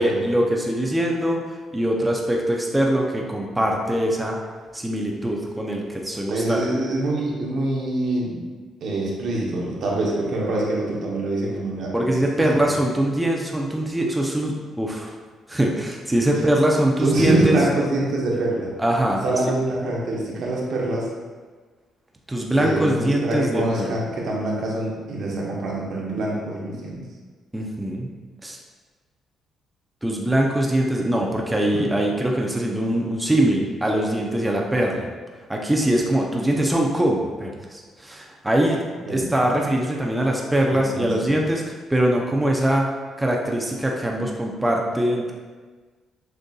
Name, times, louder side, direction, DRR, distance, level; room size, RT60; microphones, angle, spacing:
voice 1, 0.0-1.4 1.7-4.4 4.7-6.6 11.9-15.1 15.5-17.6 18.8-19.2 22.3-24.0 27.5-28.1 28.4-28.6 30.0-35.1 35.5-38.8 39.1-42.9 43.2-45.3, right 1 dB, 10° right, -1 dB, 0.5 m, -22 dB
voice 2, 6.3-8.4 8.8-11.9 12.4-12.5 17.0-18.7 19.2-21.1 22.6-27.0 31.7-31.8 39.1-39.3 40.6-41.3, right 2 dB, 70° right, -3 dB, 0.9 m, -25 dB
6.4 x 2.5 x 2.3 m, 1.4 s
cardioid pair, 90°, 0 cm